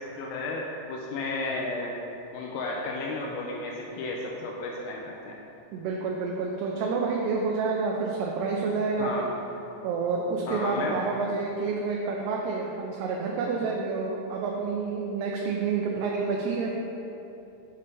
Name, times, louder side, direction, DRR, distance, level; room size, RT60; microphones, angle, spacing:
voice 1, 0.0-1.9 2.3-5.4 9.0-9.2 10.5-11.0, left 2 dB, 85° left, -2 dB, 2.1 m, -33 dB
voice 2, 5.7-9.1 9.8-16.7, right 4 dB, 85° right, -1 dB, 2.7 m, -29 dB
6.8 x 5.4 x 3.3 m, 3.0 s
omnidirectional pair, 4.7 m